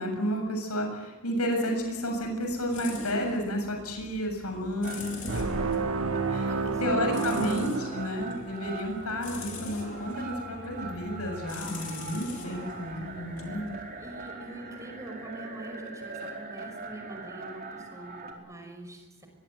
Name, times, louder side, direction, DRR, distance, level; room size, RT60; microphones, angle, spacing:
voice 1, 0.0-5.5 6.3-6.5 6.8-13.7, equal, 90° left, 4 dB, 7.5 m, -31 dB
sound 1, 1.8-14.4, left 3 dB, 35° left, 4.5 m, -44 dB
sound 2, 4.8-18.3, right 3 dB, 45° right, 4.5 m, -42 dB
sound 3, 5.3-8.6, right 4 dB, 70° right, 1.5 m, -30 dB
voice 2, 6.5-7.5 12.7-12.8 13.5-13.6 14.0-19.3, right 2 dB, 15° right, 4 dB, 5.8 m, -44 dB
23.0 x 22.0 x 9.5 m, 1.3 s
head